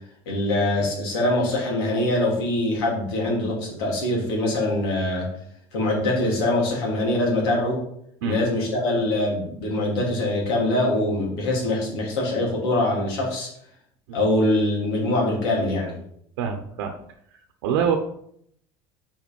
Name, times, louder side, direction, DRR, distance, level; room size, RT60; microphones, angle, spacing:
voice 1, 0.3-5.3 5.7-7.8 8.2-13.5 14.1-15.9, left 1 dB, 90° left, -2 dB, 3.1 m, -23 dB
voice 2, 16.4-16.9 17.3-18.0, right 7 dB, 90° right, 4 dB, 0.8 m, -25 dB
5.3 x 5.1 x 5.4 m, 0.70 s
supercardioid pair, 110°, 12 cm